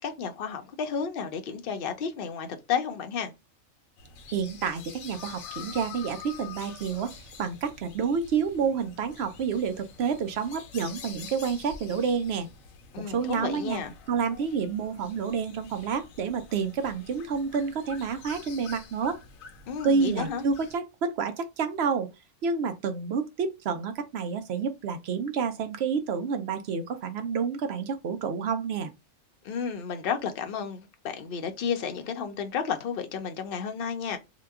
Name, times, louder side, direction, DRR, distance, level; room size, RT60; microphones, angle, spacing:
voice 1, 0.0-3.3 12.9-13.9 19.7-20.4 29.4-34.2, left 6 dB, 55° left, 0.7 m, -32 dB
sound 1, 4.0-20.8, left 6 dB, 85° left, 1.1 m, -47 dB
voice 2, 4.3-12.5 13.1-13.8 14.1-19.2 19.8-22.1 22.4-28.9, right 6 dB, 65° right, 0.7 m, -29 dB
2.9 x 2.2 x 3.4 m
omnidirectional pair, 1.4 m